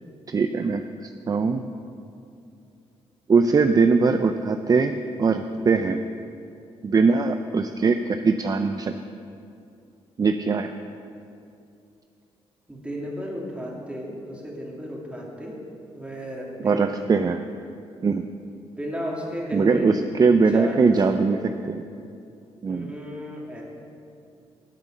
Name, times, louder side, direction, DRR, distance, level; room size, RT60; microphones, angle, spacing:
voice 1, 0.3-0.8 1.3-1.6 3.3-6.0 6.8-8.9 10.2-10.7 16.6-17.4 18.0-18.3 19.5-21.8 22.6-22.9, right 4 dB, 35° right, 8 dB, 0.5 m, -21 dB
voice 2, 12.7-15.6 15.9-17.0 18.8-20.0 20.5-20.9 21.3-21.5 22.7-23.6, equal, 10° right, -3 dB, 2.8 m, -34 dB
11.5 x 8.1 x 6.6 m, 2.6 s
cardioid pair, 85°, 11 cm